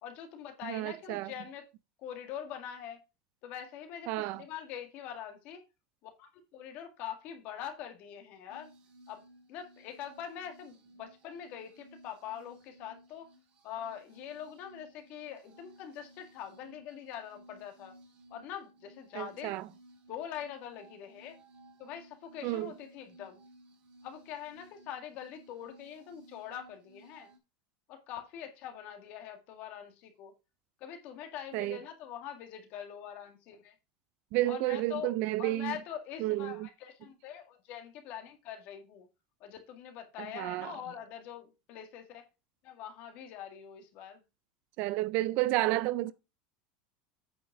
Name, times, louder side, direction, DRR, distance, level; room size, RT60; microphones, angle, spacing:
voice 1, 0.0-1.7 2.0-3.0 3.4-5.7 6.2-8.7 9.1-9.2 9.5-13.3 13.6-18.0 18.3-19.7 20.1-21.4 21.8-23.4 24.0-27.3 27.9-30.3 30.8-33.7 34.5-35.1 35.4-39.1 39.4-42.2 42.6-44.2, left 9 dB, 40° left, 1.9 m, -44 dB
voice 2, 0.6-1.3 4.1-4.4 19.1-19.7 22.4-22.7 31.5-31.8 34.3-35.8 36.2-36.7 40.2-40.8 44.8-46.1, right 17 dB, 45° right, 0.4 m, -31 dB
sound 1, 8.5-27.4, right 1 dB, 30° right, 1.8 m, -58 dB
8.8 x 5.3 x 4.7 m
cardioid pair, 175°, 4 cm